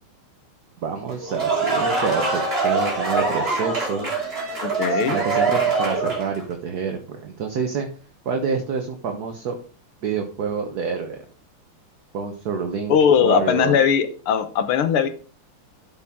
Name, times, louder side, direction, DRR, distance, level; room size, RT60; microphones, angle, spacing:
voice 1, 0.8-4.1 4.9-7.9 8.2-9.6 10.0-11.2 12.1-13.8, right 5 dB, 55° right, 4 dB, 1.4 m, -28 dB
sound 1, 1.1-6.4, right 3 dB, 25° right, 2.8 m, -23 dB
voice 2, 4.6-5.2 12.9-15.1, left 7 dB, 80° left, 9 dB, 2.0 m, -19 dB
12.5 x 5.9 x 3.6 m, 0.39 s
omnidirectional pair, 2.4 m